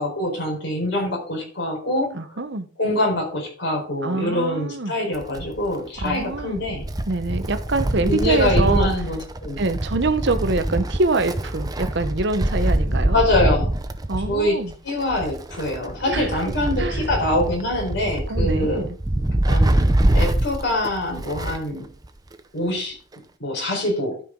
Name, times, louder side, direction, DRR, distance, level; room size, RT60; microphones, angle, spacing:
voice 1, 0.0-2.1 2.8-6.9 8.1-9.6 13.1-13.8 14.3-18.9 19.5-19.8 20.1-21.9 22.5-23.0 23.4-24.2, left 1 dB, 60° left, 4.4 m, -24 dB
voice 2, 2.1-2.7 4.0-4.9 6.0-6.6 7.1-8.9 9.6-13.2 14.1-14.7 16.1-16.3 16.8-17.0 18.3-19.0, right 3 dB, 60° right, 0.9 m, -25 dB
Wind, 5.1-21.7 22.0-22.1 23.1-23.2, right 1 dB, 20° right, 0.6 m, -24 dB
12.5 x 5.6 x 3.8 m
head